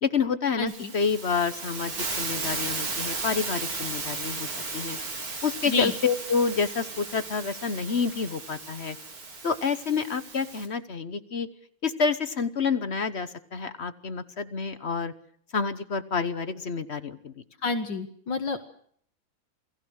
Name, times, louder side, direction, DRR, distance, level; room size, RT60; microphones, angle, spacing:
voice 1, 0.0-5.0 5.4-9.0 9.4-11.5 11.8-15.1 15.5-17.4, left 5 dB, 40° left, 12 dB, 1.0 m, -28 dB
voice 2, 0.6-0.9 5.7-5.9 17.6-18.7, left 3 dB, 60° left, 7 dB, 2.1 m, -29 dB
Hiss, 0.7-10.7, right 3 dB, 85° right, 4.4 m, -35 dB
28.5 x 19.0 x 6.4 m, 0.62 s
omnidirectional pair, 2.3 m